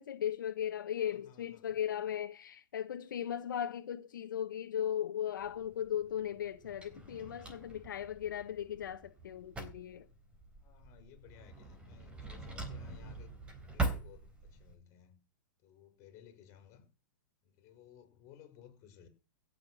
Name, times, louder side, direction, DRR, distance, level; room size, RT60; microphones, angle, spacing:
voice 1, 0.0-10.1, left 10 dB, 80° left, 1.4 m, -37 dB
voice 2, 1.0-1.8 10.6-13.3 13.7-15.2 15.6-16.9 17.4-19.1, left 9 dB, 30° left, 5.6 m, -58 dB
Drawer open or close, 5.4-14.7, right 3 dB, 10° right, 3.5 m, -43 dB
17.0 x 7.1 x 6.5 m
hypercardioid pair, 150°, 11 cm